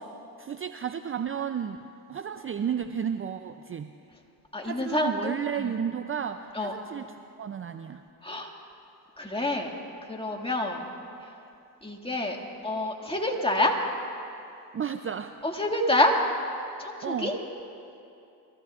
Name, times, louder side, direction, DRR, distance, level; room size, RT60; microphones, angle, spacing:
voice 1, 0.4-1.8 2.1-3.9 4.6-8.0 14.7-15.4 17.0-17.3, right 8 dB, 30° right, 9 dB, 0.5 m, -32 dB
voice 2, 4.5-5.7 6.5-6.7 8.2-8.5 9.2-9.7 10.1-10.8 11.8-12.4 12.6-13.7 15.4-16.1 16.8-17.3, left 1 dB, 15° left, 0 dB, 2.1 m, -27 dB
23.0 x 15.0 x 2.5 m, 2.7 s
supercardioid pair, 60°, 41 cm